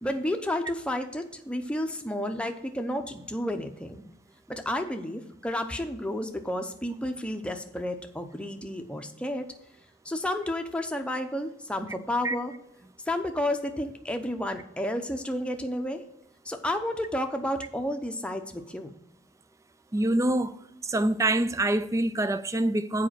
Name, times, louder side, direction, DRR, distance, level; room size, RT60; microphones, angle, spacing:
voice 1, 0.0-4.0 4.5-9.5 10.1-12.5 13.1-16.0 16.5-18.9, left 1 dB, 5° left, 0.7 m, -31 dB
voice 2, 19.9-20.6 20.8-23.1, right 1 dB, 15° right, 0.3 m, -25 dB
7.6 x 5.0 x 7.3 m
head